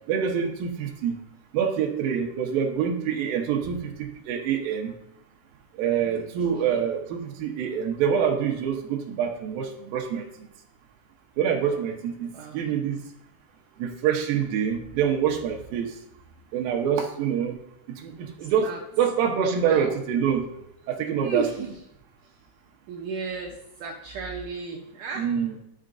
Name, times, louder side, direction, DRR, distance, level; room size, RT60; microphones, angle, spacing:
voice 1, 0.1-1.2 1.5-4.9 5.8-10.2 11.4-13.0 13.8-15.9 16.5-17.6 18.0-18.1 18.4-18.7 19.0-20.5 20.9-21.4 25.2-25.6, right 8 dB, 70° right, 2 dB, 2.3 m, -26 dB
voice 2, 12.2-12.6 18.4-18.8 19.6-19.9 21.2-21.8 22.2-22.3 22.9-25.3, right 5 dB, 90° right, -2 dB, 1.8 m, -34 dB
11.5 x 5.7 x 2.6 m, 0.83 s
omnidirectional pair, 4.9 m